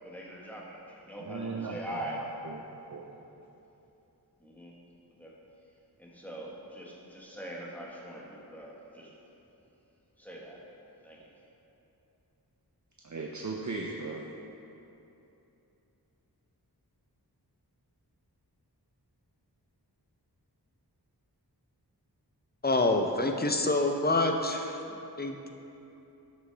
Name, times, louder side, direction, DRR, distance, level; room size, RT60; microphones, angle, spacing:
voice 1, 0.0-2.3 4.4-4.7 5.2-5.3 6.0-9.1 10.2-10.6 11.0-11.3, right 1 dB, 5° left, -4 dB, 1.5 m, -42 dB
voice 2, 1.2-2.0 2.4-3.1 13.0-14.3, right 3 dB, 45° right, -1 dB, 0.6 m, -37 dB
voice 3, 22.6-25.5, left 2 dB, 25° left, 4 dB, 0.7 m, -27 dB
12.0 x 6.3 x 3.4 m, 3.0 s
wide cardioid pair, 50°, 40 cm